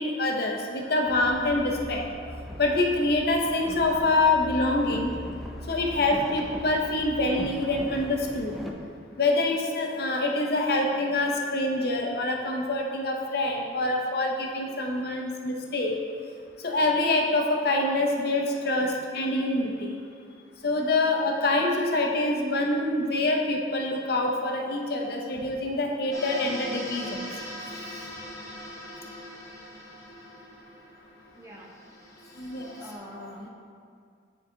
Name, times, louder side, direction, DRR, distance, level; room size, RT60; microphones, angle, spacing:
voice 1, 0.0-2.0 2.6-5.1 5.7-8.5 9.2-15.9 16.6-19.9 20.6-27.3 32.4-32.7 33.1-33.2, left 2 dB, 55° left, 1 dB, 0.6 m, -26 dB
Boat Water vehicle, 1.1-8.7, left 1 dB, ahead, 0.4 m, -40 dB
sound 1, 26.1-33.0, equal, 15° left, 0.9 m, -41 dB
voice 2, 31.4-31.7 32.8-33.5, equal, 15° right, -3 dB, 0.8 m, -43 dB
9.4 x 3.8 x 2.7 m, 2.2 s
head